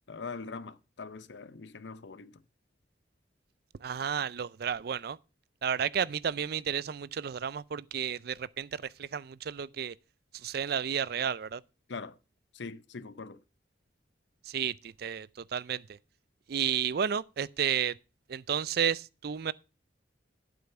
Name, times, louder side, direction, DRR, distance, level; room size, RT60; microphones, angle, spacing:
voice 1, 0.1-2.4 11.9-12.2 12.5-13.4, left 4 dB, 75° left, 0.7 m, -42 dB
voice 2, 3.8-5.2 5.6-9.9 10.3-11.6 14.4-16.0 16.5-18.0 18.3-19.5, right 8 dB, 55° right, 0.4 m, -32 dB
8.7 x 7.7 x 5.8 m
head